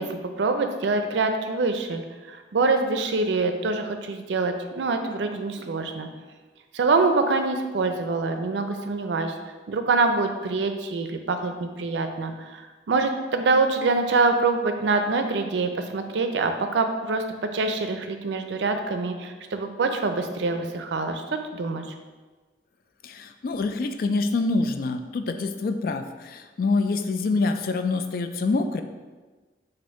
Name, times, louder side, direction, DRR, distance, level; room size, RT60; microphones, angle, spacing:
voice 1, 0.0-2.0 2.3-6.1 6.7-9.3 9.7-17.2 17.5-21.2 21.5-21.8, right 3 dB, 80° right, 6 dB, 0.4 m, -25 dB
voice 2, 23.0-28.8, left 3 dB, 50° left, 8 dB, 0.3 m, -26 dB
4.3 x 2.6 x 4.6 m, 1.3 s
head